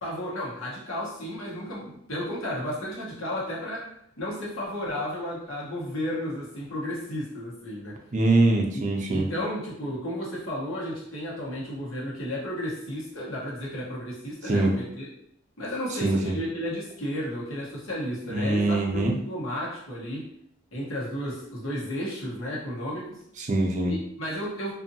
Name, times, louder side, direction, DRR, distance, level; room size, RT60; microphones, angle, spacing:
voice 1, 0.0-3.9 4.2-8.0 8.7-15.1 15.6-20.3 20.7-23.2 23.9-24.7, equal, 80° left, -5 dB, 1.1 m, -33 dB
voice 2, 8.1-9.3 14.4-14.7 16.0-16.4 18.3-19.1 23.4-24.0, right 2 dB, 40° right, 1 dB, 0.5 m, -23 dB
2.6 x 2.6 x 2.7 m, 0.72 s
head